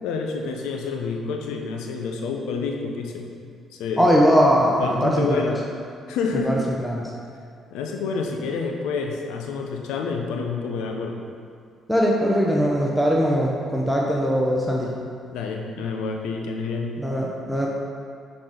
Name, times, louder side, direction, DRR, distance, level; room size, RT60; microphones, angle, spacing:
voice 1, 0.0-3.3 3.7-4.0 4.8-5.6 6.1-6.5 7.7-11.2 15.3-17.0, left 4 dB, 80° left, 2 dB, 0.7 m, -28 dB
voice 2, 4.0-5.4 6.4-7.1 11.9-14.9 17.0-17.7, equal, ahead, -3 dB, 0.9 m, -20 dB
5.8 x 4.2 x 5.0 m, 2.2 s
supercardioid pair, 55°, 0 cm